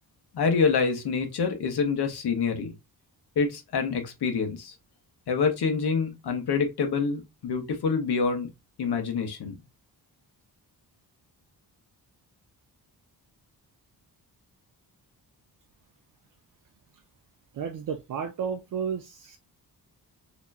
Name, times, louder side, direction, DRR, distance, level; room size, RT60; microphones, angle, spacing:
voice 1, 0.3-2.7 3.4-4.7 5.3-8.5 8.8-9.5, left 5 dB, 80° left, 1.2 m, -26 dB
voice 2, 17.5-19.4, right 7 dB, 55° right, 0.5 m, -32 dB
4.2 x 3.0 x 2.6 m
wide cardioid pair, 115°, 39 cm